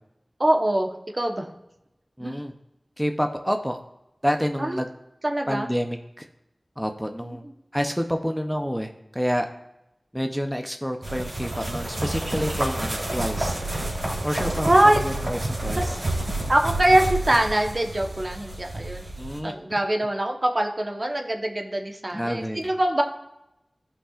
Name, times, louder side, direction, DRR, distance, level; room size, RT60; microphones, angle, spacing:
voice 1, 0.4-1.5 2.2-2.3 4.6-4.8 5.2-5.7 7.2-7.3 14.6-15.0 15.8-15.9 16.5-19.0 19.4-23.0, right 1 dB, 45° right, 3 dB, 1.0 m, -23 dB
voice 2, 2.2-2.5 3.0-3.8 4.2-4.9 5.5-6.3 6.8-7.4 7.7-9.5 10.1-13.6 14.2-16.0 19.2-19.8 22.1-22.7, equal, ahead, 4 dB, 0.7 m, -28 dB
sound 1, 11.0-19.4, right 1 dB, 65° right, 3.1 m, -29 dB
15.5 x 5.6 x 2.5 m, 0.90 s
wide cardioid pair, 50°, 0 cm